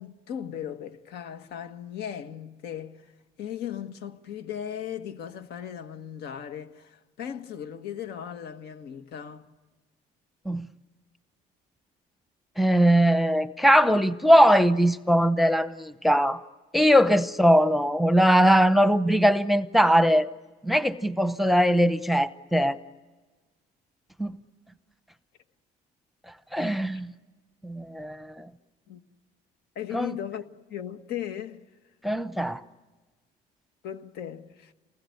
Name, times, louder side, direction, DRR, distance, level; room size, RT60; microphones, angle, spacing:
voice 1, 0.0-3.1 3.4-9.5 28.9-29.0 29.7-31.6 33.8-34.7, left 9 dB, 80° left, 1.7 m, -37 dB
voice 2, 12.6-16.4 16.7-20.3 20.6-22.8 24.2-24.3 26.5-27.1 27.6-28.5 29.9-30.1 32.0-32.6, equal, ahead, 0.8 m, -21 dB
28.0 x 20.5 x 9.6 m
cardioid pair, 110°, 17 cm